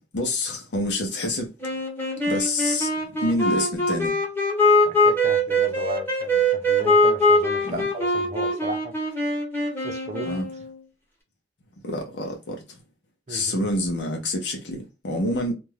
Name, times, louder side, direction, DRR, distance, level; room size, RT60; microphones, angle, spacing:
voice 1, 0.1-1.5 2.3-2.9 3.2-4.1 7.6-7.9 10.2-10.5 11.8-12.8 13.3-15.5, left 1 dB, 70° left, 0.7 m, -27 dB
sound 1, 1.6-10.8, left 1 dB, 10° left, 1.0 m, -22 dB
voice 2, 4.8-8.9 9.8-10.4 13.3-13.6, right 1 dB, 40° right, 0.6 m, -35 dB
2.5 x 2.2 x 3.1 m
head